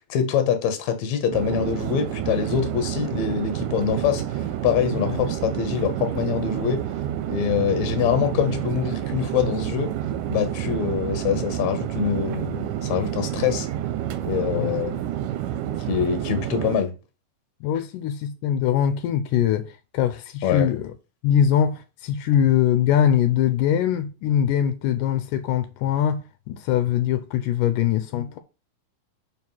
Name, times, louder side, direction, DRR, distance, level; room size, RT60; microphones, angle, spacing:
voice 1, 0.1-4.2 4.6-6.8 7.3-9.9 10.3-13.7 14.2-15.0 15.9-16.9 20.4-20.7, left 8 dB, 65° left, 2.2 m, -24 dB
Chatter / Fixed-wing aircraft airplane, 1.3-16.8, right 11 dB, 85° right, 2.2 m, -29 dB
voice 2, 17.6-20.9 21.2-28.4, left 9 dB, 85° left, 2.2 m, -22 dB
5.1 x 4.7 x 5.5 m
omnidirectional pair, 3.7 m